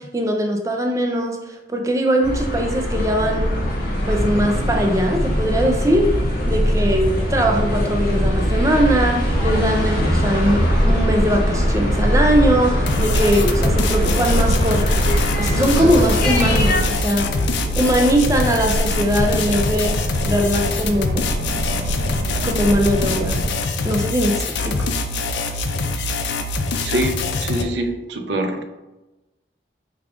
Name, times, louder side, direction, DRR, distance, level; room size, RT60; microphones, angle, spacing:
voice 1, 0.0-3.5 4.1-6.1 6.5-14.8 15.4-17.4 17.7-20.0 20.2-21.3 22.4-23.4 23.8-24.9, equal, 20° right, 2 dB, 0.4 m, -20 dB
sound 1, 2.2-16.8, equal, 55° left, 1.1 m, -22 dB
sound 2, 5.4-23.5, equal, 60° right, 0.8 m, -25 dB
sound 3, 12.9-27.6, left 3 dB, 85° left, 0.4 m, -24 dB
voice 2, 26.8-28.6, right 1 dB, 90° right, 6 dB, 0.5 m, -24 dB
4.9 x 2.4 x 3.5 m, 1.1 s
head